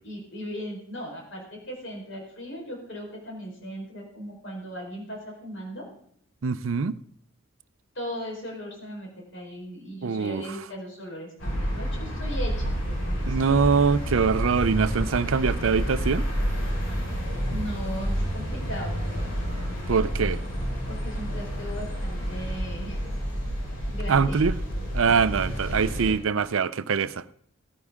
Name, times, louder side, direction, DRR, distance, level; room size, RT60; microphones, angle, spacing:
voice 1, 0.0-5.8 7.9-13.5 17.5-19.0 20.9-23.0 23.9-24.5, equal, 60° left, 4.3 m, -38 dB
voice 2, 6.4-6.9 10.0-10.4 13.3-16.2 19.9-20.4 24.1-24.6 24.9-27.2, right 5 dB, 75° right, 0.5 m, -23 dB
sound 1, 11.4-26.1, equal, 85° left, 5.9 m, -29 dB
17.0 x 9.6 x 3.6 m
head